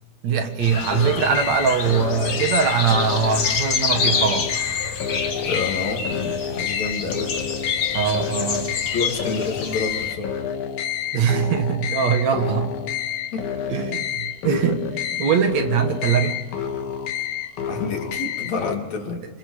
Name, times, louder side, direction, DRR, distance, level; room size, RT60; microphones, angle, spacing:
voice 1, 0.2-4.5 7.9-8.8 11.1-12.7 13.7-16.4, right 7 dB, 65° right, 6 dB, 2.8 m, -22 dB
sound 1, 0.6-10.1, left 5 dB, 50° left, 2.6 m, -28 dB
sound 2, 0.9-18.8, left 9 dB, 80° left, 2.8 m, -29 dB
voice 2, 5.5-7.4 8.9-10.4 13.3-13.5 17.7-19.2, left 4 dB, 65° left, 3 dB, 3.8 m, -28 dB
29.5 x 25.5 x 5.0 m, 1.3 s
omnidirectional pair, 3.4 m